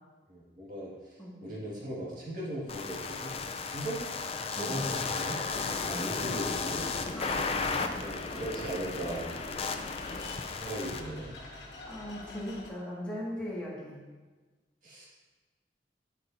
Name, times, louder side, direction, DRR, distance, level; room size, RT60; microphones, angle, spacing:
voice 1, 0.3-0.9 1.4-3.4 3.7-4.0 4.6-5.4 5.8-6.9 8.0-9.3 10.1-11.3 14.8-15.1, right 1 dB, 50° right, -6 dB, 2.0 m, -38 dB
sound 1, 2.7-11.0, left 4 dB, 35° left, 0.5 m, -34 dB
sound 2, 4.8-12.7, left 2 dB, 75° left, 1.5 m, -46 dB
voice 2, 7.1-7.9 11.9-14.0, left 1 dB, 5° left, -7 dB, 1.9 m, -39 dB
8.7 x 8.4 x 2.7 m, 1.3 s
head